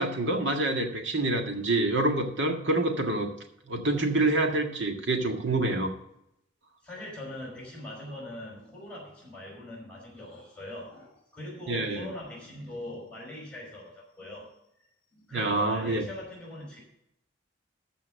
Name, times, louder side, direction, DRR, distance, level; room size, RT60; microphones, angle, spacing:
voice 1, 0.0-3.3 3.7-5.9 11.7-12.1 15.3-16.0, right 2 dB, 70° right, 3 dB, 1.8 m, -27 dB
voice 2, 6.8-14.5 15.1-16.8, left 1 dB, 5° left, -3 dB, 5.2 m, -42 dB
14.0 x 5.6 x 6.4 m, 0.78 s
head